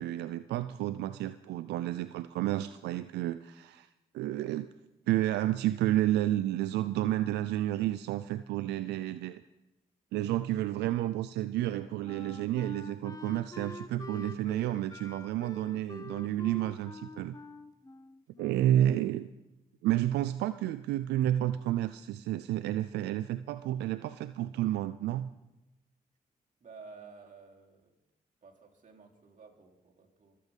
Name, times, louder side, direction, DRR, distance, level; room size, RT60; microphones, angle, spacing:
voice 1, 0.0-3.9 4.1-4.7 5.1-9.4 10.1-17.4 18.4-19.2 19.8-25.3, right 13 dB, 85° right, 13 dB, 0.4 m, -31 dB
Wind instrument woodwind instrument, 11.6-18.9, left 3 dB, 20° left, 0.9 m, -47 dB
voice 2, 18.6-19.0 26.6-27.9 28.4-30.4, right 4 dB, 50° right, 0 dB, 2.9 m, -53 dB
23.0 x 8.4 x 5.3 m, 0.96 s
supercardioid pair, 50°, 17 cm